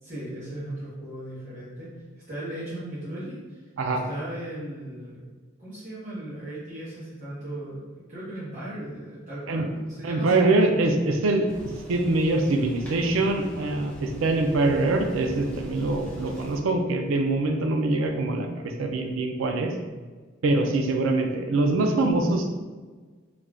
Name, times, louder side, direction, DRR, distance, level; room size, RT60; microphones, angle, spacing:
voice 1, 0.0-1.9 2.3-5.2 5.6-10.5 20.4-20.7, right 1 dB, 35° right, -11 dB, 0.8 m, -37 dB
voice 2, 10.0-11.5 11.9-19.7 20.4-22.5, right 2 dB, 75° right, 4 dB, 0.4 m, -24 dB
sound 1, 11.5-16.6, equal, 5° left, 0.5 m, -41 dB
2.5 x 2.2 x 3.3 m, 1.4 s
head